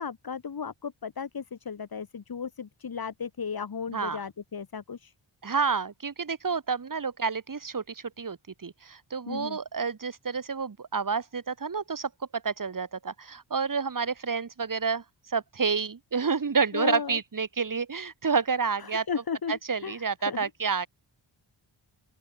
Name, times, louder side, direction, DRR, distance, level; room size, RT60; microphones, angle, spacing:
voice 1, 0.0-5.1 9.3-9.6 16.7-17.2 18.8-20.0 20.3-20.5, left 6 dB, 50° left, 3.5 m, -35 dB
voice 2, 5.4-19.1 19.5-20.9, right 5 dB, 45° right, 6.1 m, -29 dB
open air
wide cardioid pair, 175°, 46 cm